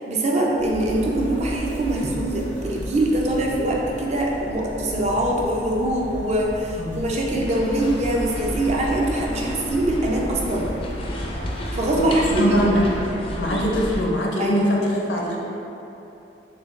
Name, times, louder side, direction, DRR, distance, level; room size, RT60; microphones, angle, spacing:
voice 1, 0.0-10.7 11.7-12.6 14.4-14.9, right 1 dB, 35° right, -2 dB, 0.4 m, -23 dB
sound 1, 0.6-13.1, equal, 70° right, 1.1 m, -35 dB
sound 2, 7.4-14.0, equal, 30° left, 0.4 m, -31 dB
voice 2, 12.0-12.8 13.4-15.4, equal, 70° left, -2 dB, 0.6 m, -22 dB
6.6 x 2.3 x 2.4 m, 2.9 s
head